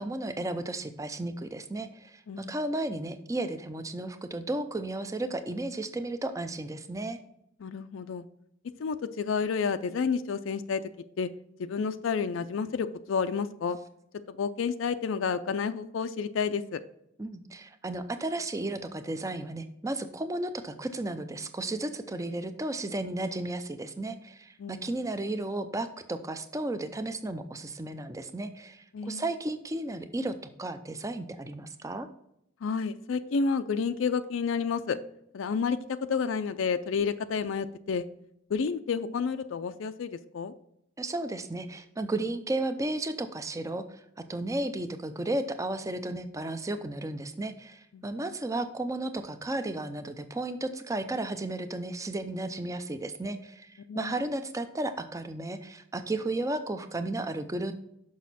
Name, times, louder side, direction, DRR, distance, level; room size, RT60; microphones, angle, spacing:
voice 1, 0.0-7.2 17.2-32.1 41.0-44.0 44.3-57.7, right 2 dB, 15° right, 10 dB, 0.5 m, -34 dB
voice 2, 7.6-8.2 8.8-10.8 11.2-11.3 11.6-13.8 14.3-16.8 24.6-24.9 28.9-29.2 32.6-35.0 35.3-38.0 38.5-40.5 47.9-48.3 53.9-54.1, left 5 dB, 80° left, 11 dB, 0.4 m, -30 dB
6.3 x 6.0 x 4.1 m, 0.77 s
head